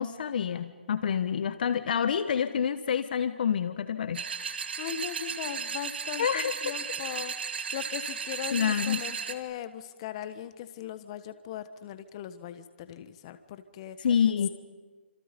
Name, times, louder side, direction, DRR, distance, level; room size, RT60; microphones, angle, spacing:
voice 1, 0.0-4.2 6.2-6.6 8.5-9.0 14.0-14.5, left 8 dB, 50° left, 12 dB, 1.3 m, -27 dB
sound 1, 4.1-9.3, right 6 dB, 60° right, 1.9 m, -35 dB
voice 2, 4.8-14.0, left 10 dB, 30° left, 12 dB, 1.4 m, -39 dB
30.0 x 27.0 x 5.3 m, 1.3 s
hypercardioid pair, 155°, 6 cm